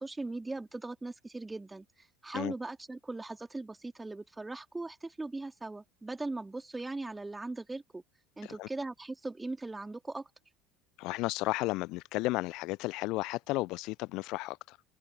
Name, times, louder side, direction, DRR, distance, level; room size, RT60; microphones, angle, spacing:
voice 1, 0.0-1.8 2.2-8.0 8.4-10.3, right 2 dB, 10° right, 3.4 m, -39 dB
voice 2, 11.0-14.8, left 21 dB, 55° left, 0.7 m, -33 dB
open air
figure-of-eight pair, 65°, 0 cm